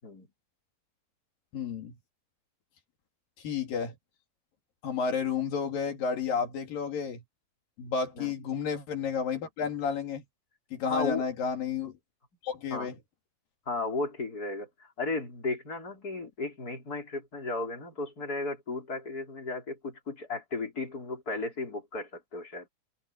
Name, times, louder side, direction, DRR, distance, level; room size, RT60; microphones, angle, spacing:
voice 1, 1.5-1.9 3.4-3.9 4.8-7.2 7.8-10.2 10.7-11.9 12.4-12.9, left 6 dB, 80° left, 4.3 m, -31 dB
voice 2, 10.9-11.3 12.7-12.9 13.7-22.7, left 3 dB, 25° left, 5.5 m, -35 dB
omnidirectional pair, 4.0 m